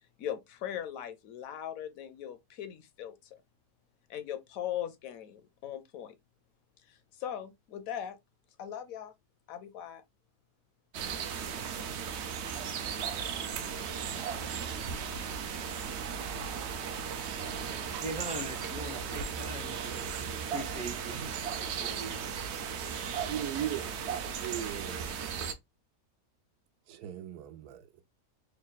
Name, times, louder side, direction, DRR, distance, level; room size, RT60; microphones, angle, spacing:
voice 1, 0.2-3.1 4.1-6.1 6.9-8.2 8.6-9.1 9.5-10.0, left 10 dB, 70° left, 0.9 m, -39 dB
sound 1, 10.9-25.5, right 7 dB, 65° right, 0.7 m, -36 dB
voice 2, 18.0-21.2 21.6-22.3, right 1 dB, 10° right, 0.3 m, -41 dB
voice 3, 23.3-25.2 26.9-28.0, right 11 dB, 85° right, 1.2 m, -38 dB
3.6 x 2.2 x 3.8 m
omnidirectional pair, 1.6 m